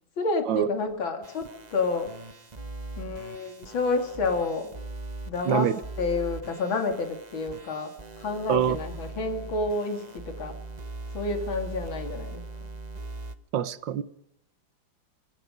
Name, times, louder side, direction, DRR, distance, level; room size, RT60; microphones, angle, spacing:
voice 1, 0.2-2.1 3.0-4.7 5.3-10.6 11.1-12.7, left 3 dB, 85° left, 3.2 m, -29 dB
sound 1, 1.2-13.3, right 2 dB, 25° right, 1.1 m, -40 dB
voice 2, 5.5-5.8 8.5-8.8 13.5-14.0, right 9 dB, 70° right, 1.8 m, -25 dB
25.5 x 23.0 x 5.3 m
omnidirectional pair, 2.1 m